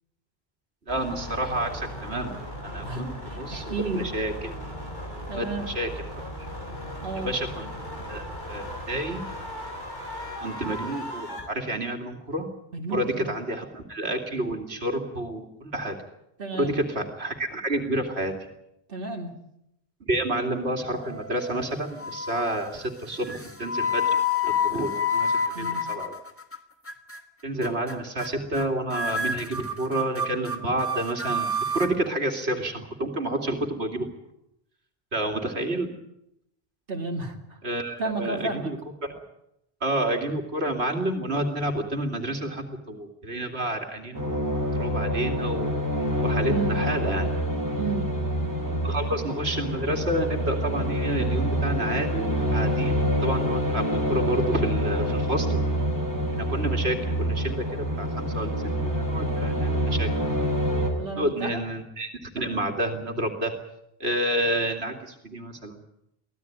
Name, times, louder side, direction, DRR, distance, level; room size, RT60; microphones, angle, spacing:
sound 1, 0.9-11.4, equal, 50° left, 7.1 m, -37 dB
voice 1, 0.9-2.4 2.6-4.6 5.3-5.9 7.2-9.2 10.4-12.5 12.9-16.0 16.5-18.3 20.1-26.1 27.4-34.1 35.1-35.9 37.6-38.8 39.0-39.1 39.8-45.7 46.2-47.3 48.8-55.6 56.4-58.6 58.8-60.1 61.1-63.5 64.0-65.8, right 1 dB, 80° right, 4 dB, 2.8 m, -29 dB
voice 2, 2.8-4.1 5.3-5.7 7.0-7.3 12.7-13.3 16.4-16.8 18.9-19.4 25.5-25.9 36.9-37.4 38.0-38.7 46.5-46.8 47.8-48.1 61.0-61.6, right 3 dB, 60° right, 1 dB, 2.5 m, -32 dB
sound 2, 21.0-21.6 22.0-22.5 23.3-26.6 26.9-27.2 27.6-27.9 28.2-28.3 28.5-28.6 28.9-31.9, left 4 dB, 15° left, 1.5 m, -28 dB
sound 3, 44.1-60.9, equal, 15° right, 5.3 m, -26 dB
24.5 x 16.0 x 9.3 m, 0.82 s
omnidirectional pair, 1.1 m